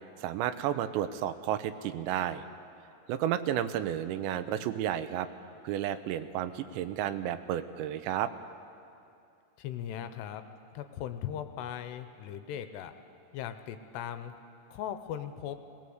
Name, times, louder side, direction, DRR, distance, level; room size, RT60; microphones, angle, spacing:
voice 1, 0.2-2.4 3.1-5.3 5.6-8.3, right 11 dB, 90° right, 11 dB, 3.0 m, -32 dB
voice 2, 9.6-10.5 10.7-12.9 13.3-14.3 14.7-15.6, left 10 dB, 80° left, 10 dB, 2.8 m, -38 dB
20.0 x 19.0 x 7.9 m, 2.7 s
omnidirectional pair, 5.0 m